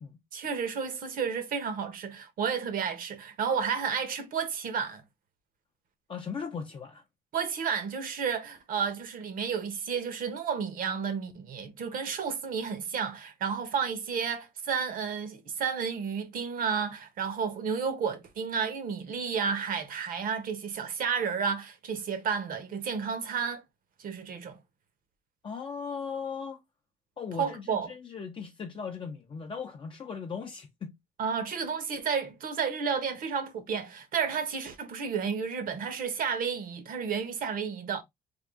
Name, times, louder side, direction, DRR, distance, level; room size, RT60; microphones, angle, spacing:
voice 1, 0.3-5.0 7.3-23.6 24.0-24.6 27.4-27.9 31.2-38.0, right 6 dB, 55° right, 1.0 m, -31 dB
voice 2, 6.1-7.0 25.4-26.6 27.2-30.9, left 6 dB, 30° left, 0.5 m, -38 dB
3.6 x 2.3 x 3.5 m
cardioid pair, 110°, 17 cm